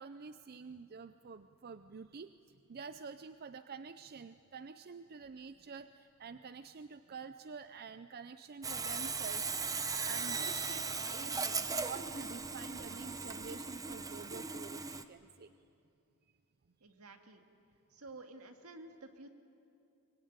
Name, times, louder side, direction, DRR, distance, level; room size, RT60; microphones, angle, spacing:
voice 1, 0.0-2.3 2.7-9.4 10.0-15.5, right 5 dB, 45° right, 11 dB, 0.5 m, -48 dB
Sawing, 8.6-15.0, right 4 dB, 15° right, 0.8 m, -38 dB
voice 2, 16.8-17.4 17.9-19.3, right 2 dB, 75° right, 5 dB, 2.0 m, -51 dB
24.0 x 22.0 x 9.5 m, 2.7 s
head